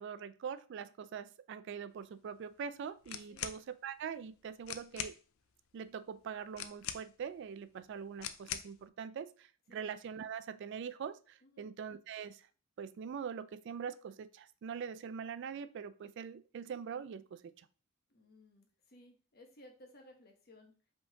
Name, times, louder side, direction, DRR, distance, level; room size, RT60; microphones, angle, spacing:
voice 1, 0.0-5.2 5.7-12.4 12.8-17.5, right 7 dB, 60° right, 0.3 m, -43 dB
sound 1, 3.0-3.6 4.3-4.4 4.6-5.2 6.5-7.3 8.2-8.8, left 9 dB, 75° left, 0.4 m, -42 dB
voice 2, 11.4-11.7 18.1-20.7, left 1 dB, 50° left, 1.0 m, -59 dB
5.2 x 3.5 x 2.8 m
head